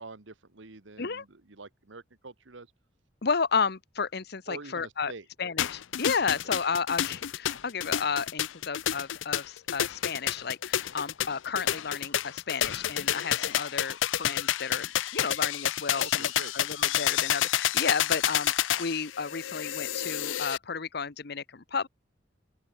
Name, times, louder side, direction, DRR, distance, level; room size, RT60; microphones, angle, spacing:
voice 1, 0.0-2.7 4.5-5.2 15.9-16.5, right 3 dB, 75° right, 1.4 m, -45 dB
voice 2, 3.2-5.1 5.4-14.9 15.1-21.9, left 5 dB, 55° left, 1.0 m, -32 dB
sound 1, 5.6-20.6, left 11 dB, 80° left, 0.5 m, -29 dB
open air
head